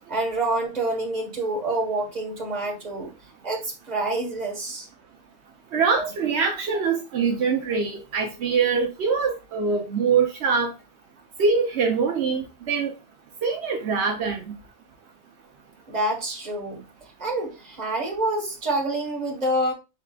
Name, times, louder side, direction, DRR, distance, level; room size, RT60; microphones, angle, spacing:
voice 1, 0.1-3.1 3.4-4.9 15.9-16.8 17.2-19.7, right 2 dB, 40° right, 1.5 m, -27 dB
voice 2, 5.7-10.7 11.4-12.9 13.4-14.4, right 5 dB, 75° right, 1.0 m, -23 dB
5.7 x 3.5 x 2.3 m
omnidirectional pair, 1.1 m